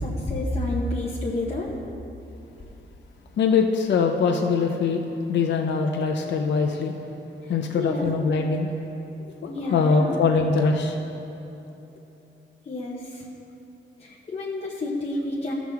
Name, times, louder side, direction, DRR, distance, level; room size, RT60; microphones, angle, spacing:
voice 1, 0.0-1.7 7.7-8.0 9.5-10.2 12.7-13.0 14.0-15.5, left 2 dB, 35° left, -4 dB, 0.9 m, -29 dB
voice 2, 3.4-5.0 5.3-6.9 7.5-8.7 9.2-11.0, left 5 dB, 70° left, 3 dB, 0.6 m, -22 dB
15.0 x 6.1 x 3.5 m, 2.9 s
wide cardioid pair, 160°, 19 cm